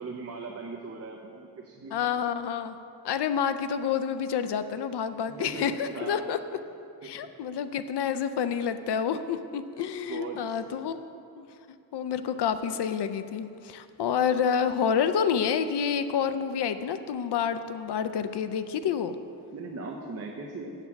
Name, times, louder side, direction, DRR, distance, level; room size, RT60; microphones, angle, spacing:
voice 1, 0.0-2.1 5.3-6.3 7.0-7.3 10.1-10.9 18.9-19.0 19.5-20.8, right 4 dB, 40° right, 0 dB, 0.7 m, -39 dB
voice 2, 1.9-2.8 3.0-6.4 7.0-11.0 11.4-11.5 11.9-19.1, left 7 dB, 80° left, 10 dB, 0.5 m, -28 dB
8.3 x 6.7 x 5.8 m, 2.5 s
wide cardioid pair, 145°, 40 cm